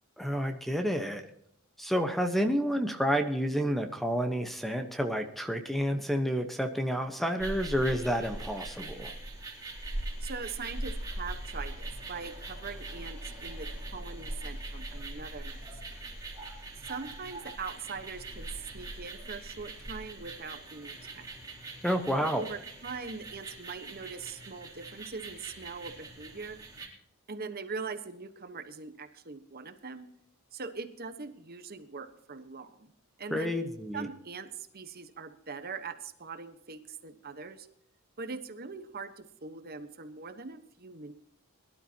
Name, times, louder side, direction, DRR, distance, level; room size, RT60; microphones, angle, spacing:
voice 1, 0.2-1.2 1.8-9.1 21.8-22.4 33.3-34.1, equal, ahead, 6 dB, 1.0 m, -30 dB
sound 1, 7.4-26.9, right 1 dB, 15° right, 4.2 m, -41 dB
voice 2, 10.2-15.6 16.9-21.3 22.2-26.6 27.3-30.1 30.5-32.9 33.2-33.5 33.9-37.7 38.2-41.1, right 4 dB, 45° right, 8 dB, 1.2 m, -42 dB
22.0 x 12.0 x 2.9 m, 0.73 s
head